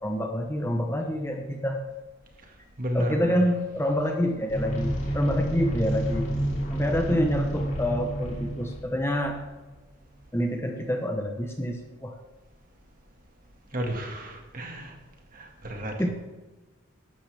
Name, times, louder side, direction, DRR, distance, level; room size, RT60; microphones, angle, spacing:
voice 1, 0.0-1.8 2.9-6.3 6.7-9.4 10.3-12.2 16.0-16.1, equal, 10° left, 3 dB, 0.9 m, -27 dB
voice 2, 2.8-3.4 13.7-14.9 15.3-15.9, equal, 40° right, 2 dB, 2.0 m, -32 dB
sound 1, 4.5-9.7, right 1 dB, 35° left, 4.2 m, -29 dB
14.0 x 11.5 x 3.5 m, 1.2 s
head